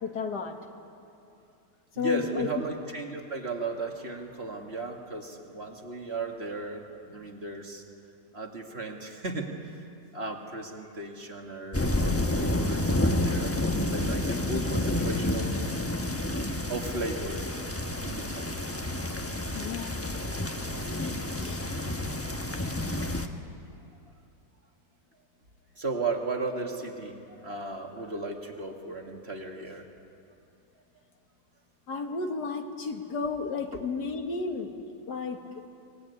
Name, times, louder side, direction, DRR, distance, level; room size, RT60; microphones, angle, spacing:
voice 1, 0.0-0.6 2.0-2.5 19.5-20.8 21.4-21.6 31.9-34.8 35.1-35.4, left 5 dB, 90° left, 5 dB, 2.2 m, -33 dB
voice 2, 2.0-7.8 8.3-9.8 10.1-15.5 16.7-17.6 18.0-18.6 25.8-29.9, right 3 dB, 40° right, 2 dB, 2.3 m, -36 dB
sound 1, 11.7-23.3, left 1 dB, 10° left, 1.0 m, -29 dB
24.0 x 19.5 x 9.7 m, 2.6 s
omnidirectional pair, 1.7 m